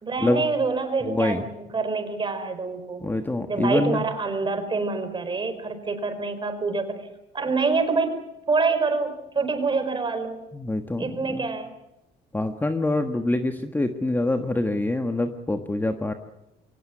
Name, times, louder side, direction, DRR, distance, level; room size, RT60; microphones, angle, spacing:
voice 1, 0.0-3.1 3.5-7.0 7.3-8.2 8.5-10.5 11.0-11.7, right 4 dB, 30° right, 8 dB, 4.8 m, -26 dB
voice 2, 1.0-1.4 3.0-4.1 10.5-11.5 12.3-16.1, left 2 dB, 10° left, 6 dB, 1.4 m, -25 dB
23.5 x 18.0 x 9.6 m, 0.90 s
cardioid pair, 110°, 17 cm